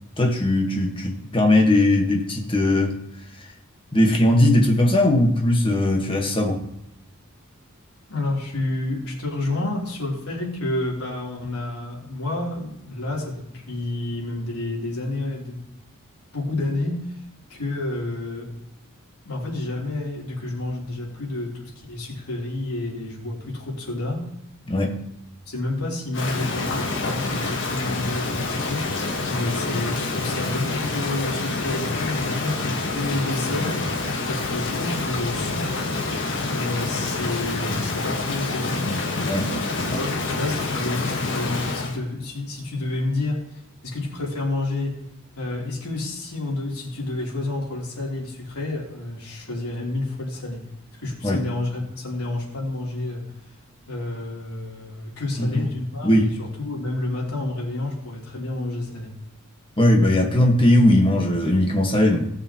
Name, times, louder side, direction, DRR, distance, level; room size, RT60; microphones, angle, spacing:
voice 1, 0.2-3.0 3.9-6.6 24.7-25.0 39.3-40.0 51.2-51.4 55.4-55.7 56.0-56.3 59.8-62.2, left 1 dB, 25° left, 1 dB, 1.5 m, -19 dB
voice 2, 8.1-15.6 16.3-17.2 17.5-18.5 19.2-24.2 25.5-28.9 29.3-33.8 34.2-35.8 36.5-38.9 39.9-43.4 43.8-45.0 45.3-50.6 51.0-53.2 53.9-59.1, left 2 dB, 90° left, -4 dB, 3.4 m, -29 dB
Rain, 26.1-42.0, left 3 dB, 55° left, 1.6 m, -27 dB
18.0 x 6.9 x 3.0 m, 0.79 s
head